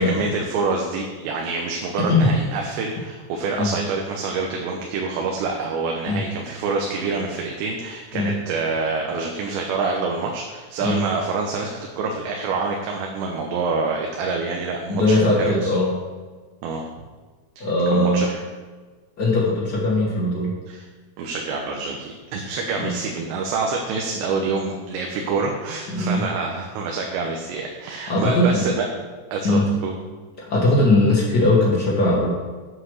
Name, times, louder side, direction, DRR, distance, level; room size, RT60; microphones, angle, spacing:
voice 1, 0.0-15.7 16.6-16.8 17.6-18.4 20.7-20.9 21.2-28.9 29.3-29.9, right 4 dB, 85° right, 1 dB, 3.2 m, -26 dB
voice 2, 14.9-16.0 17.6-18.3 19.2-20.5 22.8-23.0 25.9-26.3 28.1-28.7 29.4-29.7 30.4-32.3, left 2 dB, 80° left, -5 dB, 0.9 m, -19 dB
8.2 x 7.8 x 6.4 m, 1.4 s
omnidirectional pair, 5.0 m